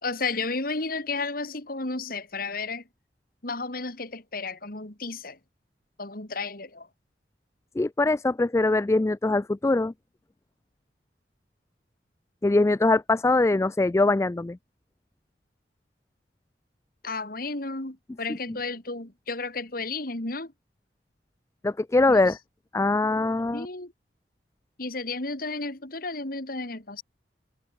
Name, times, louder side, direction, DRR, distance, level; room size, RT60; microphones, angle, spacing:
voice 1, 0.0-2.9 3.4-5.4 6.0-6.9 17.0-20.5 22.1-22.4 23.5-23.9 24.8-27.0, left 3 dB, 55° left, 3.0 m, -33 dB
voice 2, 7.8-9.9 12.4-14.6 21.6-22.4 22.7-23.7, left 2 dB, 15° left, 0.3 m, -22 dB
open air
head